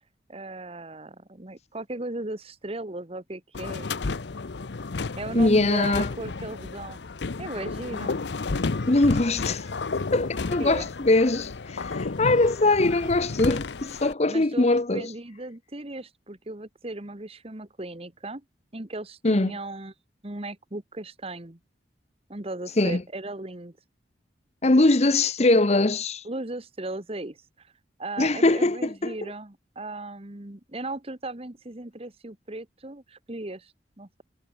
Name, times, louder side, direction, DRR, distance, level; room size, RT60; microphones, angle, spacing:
voice 1, 0.3-3.9 5.2-7.0 7.4-8.2 10.6-10.9 14.3-18.4 18.7-19.9 20.2-21.6 22.3-23.8 25.5-25.6 26.2-27.7 28.0-34.2, right 2 dB, 35° right, 1.4 m, -37 dB
sound 1, 3.5-14.1, left 3 dB, 70° left, 0.7 m, -32 dB
voice 2, 5.3-6.1 8.9-9.7 10.1-15.1 19.2-19.6 22.8-23.0 24.6-26.2 28.2-29.1, left 2 dB, 35° left, 0.9 m, -22 dB
head